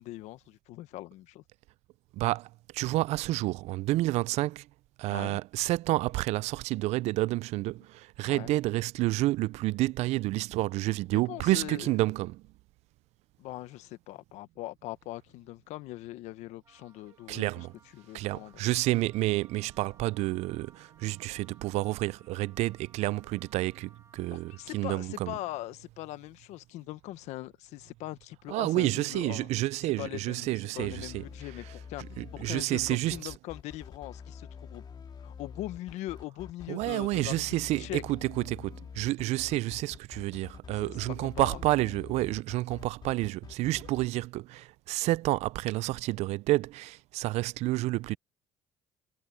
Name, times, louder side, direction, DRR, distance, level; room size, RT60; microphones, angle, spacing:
voice 1, 0.0-1.4 5.1-5.4 8.3-8.5 11.1-11.9 13.4-17.6 17.9-18.5 24.3-29.5 30.0-32.0 32.3-38.0 40.8-40.9 41.2-41.6, left 17 dB, 75° left, 1.3 m, -41 dB
voice 2, 2.1-4.7 5.0-12.4 17.3-17.7 18.1-25.3 28.5-31.2 32.2-33.3 36.7-48.2, right 18 dB, 70° right, 0.4 m, -29 dB
Wind instrument woodwind instrument, 16.6-24.9, right 4 dB, 25° right, 4.7 m, -62 dB
sound 1, 30.8-44.1, left 6 dB, 40° left, 2.3 m, -46 dB
supercardioid pair, 90°, 12 cm